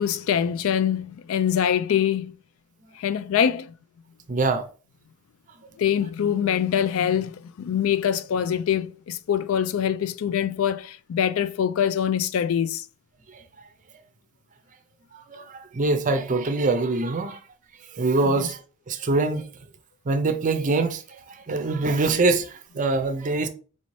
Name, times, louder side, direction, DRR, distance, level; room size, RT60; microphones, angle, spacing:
voice 1, 0.0-2.3 3.0-3.7 5.8-12.8 18.3-18.5, left 9 dB, 65° left, 0.3 m, -24 dB
voice 2, 4.3-4.6 15.3-17.4 17.9-18.6 18.9-19.5 20.1-21.0 21.3-23.5, right 3 dB, 35° right, 0.5 m, -24 dB
4.2 x 2.7 x 3.1 m
head